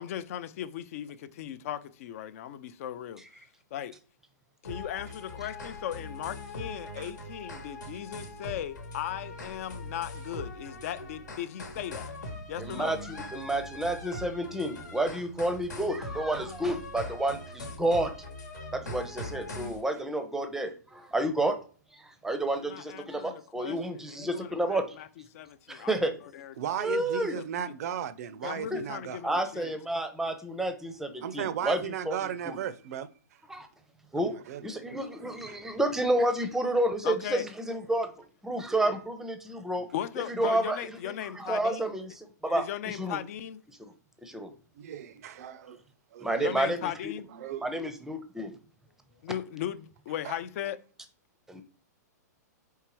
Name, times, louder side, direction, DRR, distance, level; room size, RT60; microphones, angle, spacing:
voice 1, 0.0-3.2 3.7-3.9 4.6-12.1 12.5-12.9 16.6-16.7 22.6-25.1 25.3-25.9 26.3-26.5 27.3-27.4 28.4-29.8 37.0-37.5 39.7-41.9 42.5-43.6 46.4-47.3 49.2-50.8, left 11 dB, 55° left, 0.4 m, -37 dB
sound 1, 4.6-19.8, left 1 dB, 85° left, 1.2 m, -41 dB
voice 2, 12.6-18.1 18.7-21.6 21.9-24.9 25.7-26.1 26.8-27.3 28.7-28.8 29.2-31.8 32.1-32.2 32.5-32.6 33.5-33.7 34.1-34.4 34.6-38.1 38.4-39.9 40.4-40.8 41.0-43.2 44.2-44.5 46.2-47.1 47.6-48.5 51.5-51.6, right 1 dB, 5° right, 0.5 m, -30 dB
voice 3, 26.6-29.2 31.2-33.4 34.2-35.6 36.0-36.1 38.7-39.0 44.7-45.8 46.1-46.5 47.3-47.7 50.2-50.4, right 9 dB, 60° right, 0.4 m, -36 dB
4.6 x 3.4 x 3.0 m
hypercardioid pair, 130°, 10 cm